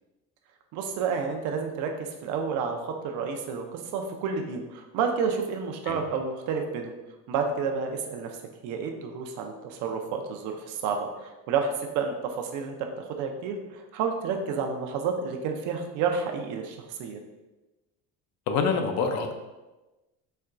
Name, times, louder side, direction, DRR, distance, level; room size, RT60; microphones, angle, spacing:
voice 1, 0.7-1.9 2.2-6.9 7.3-8.4 8.6-17.2, right 5 dB, 70° right, 4 dB, 0.5 m, -30 dB
voice 2, 18.5-19.3, left 5 dB, 60° left, 5 dB, 0.4 m, -26 dB
4.2 x 2.2 x 2.4 m, 1.1 s
cardioid pair, 160°, 31 cm